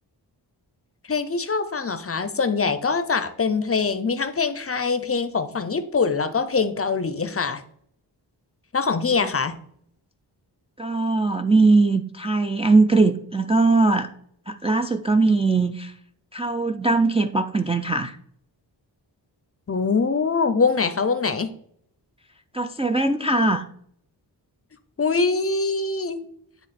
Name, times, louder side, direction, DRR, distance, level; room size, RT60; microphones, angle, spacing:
voice 1, 1.1-7.6 8.7-9.6 19.7-21.5 25.0-26.2, left 4 dB, 35° left, 11 dB, 0.6 m, -23 dB
voice 2, 10.8-14.1 14.5-15.9 16.3-18.2 22.5-23.6, right 3 dB, 15° right, 5 dB, 0.3 m, -20 dB
9.8 x 3.5 x 4.1 m, 0.67 s
wide cardioid pair, 125°, 43 cm